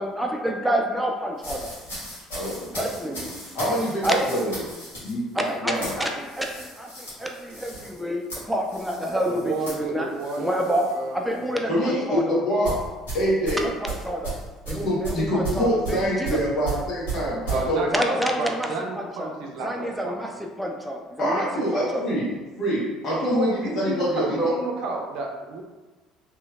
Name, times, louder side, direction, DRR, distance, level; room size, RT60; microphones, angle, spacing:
voice 1, 0.0-1.7 2.7-3.3 4.0-4.2 5.3-10.1 10.4-10.9 11.1-12.4 13.5-14.4 14.7-16.4 17.9-18.7 19.0-19.3 19.6-21.5 21.7-22.0, equal, 5° right, 2 dB, 0.5 m, -28 dB
sound 1, 1.4-11.0 11.3-11.6 12.6-17.6, right 3 dB, 90° left, 1.4 m, -35 dB
voice 2, 2.3-2.9 3.5-4.5 5.0-6.0 11.7-12.7 13.1-13.6 14.7-18.0 21.2-22.3 22.6-24.5, equal, 55° left, -6 dB, 1.1 m, -25 dB
voice 3, 9.3-10.6 10.9-11.5 17.5-20.1 23.2-25.6, right 3 dB, 65° right, 0 dB, 0.5 m, -31 dB
3.1 x 3.0 x 2.3 m, 1.2 s
hypercardioid pair, 65°, 0 cm